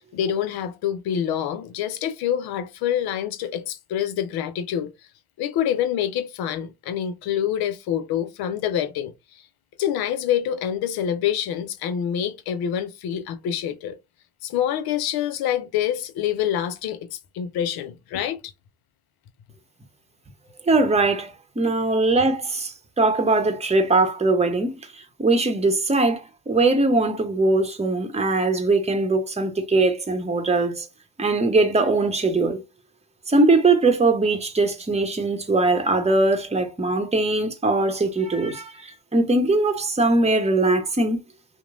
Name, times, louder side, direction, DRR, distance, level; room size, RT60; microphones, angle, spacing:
voice 1, 0.1-4.9 5.4-9.1 9.8-14.0 14.4-18.4, left 10 dB, 80° left, 0.6 m, -26 dB
voice 2, 20.6-30.9 31.2-32.6 33.3-41.2, right 2 dB, 15° right, 0.9 m, -21 dB
2.9 x 2.2 x 2.5 m
hypercardioid pair, 45°, 37 cm